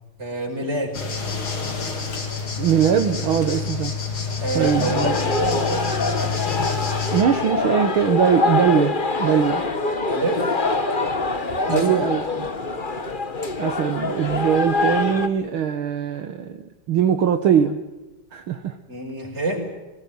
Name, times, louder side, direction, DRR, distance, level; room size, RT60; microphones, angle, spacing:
voice 1, 0.2-1.0 4.4-6.1 10.1-10.5 11.7-12.0 18.9-19.6, right 1 dB, 30° right, 2 dB, 5.7 m, -27 dB
sound 1, 0.9-7.2, left 5 dB, 70° left, 3.9 m, -28 dB
voice 2, 2.6-4.0 4.5-5.2 7.1-9.6 11.7-12.5 13.6-17.8 18.3-18.8, right 8 dB, 70° right, 7 dB, 2.0 m, -21 dB
sound 2, 4.6-15.3, left 3 dB, 25° left, 1.6 m, -24 dB
25.0 x 19.0 x 9.4 m, 1.1 s
omnidirectional pair, 2.4 m